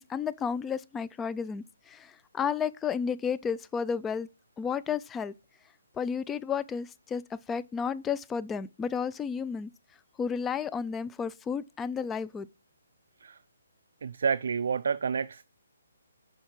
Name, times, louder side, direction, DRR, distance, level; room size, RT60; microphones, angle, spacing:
voice 1, 0.0-4.3 4.6-5.3 5.9-9.7 10.2-12.5, left 6 dB, 10° left, 0.4 m, -32 dB
voice 2, 14.0-15.5, right 6 dB, 65° right, 0.4 m, -29 dB
7.0 x 5.7 x 6.0 m
hypercardioid pair, 145°, 0 cm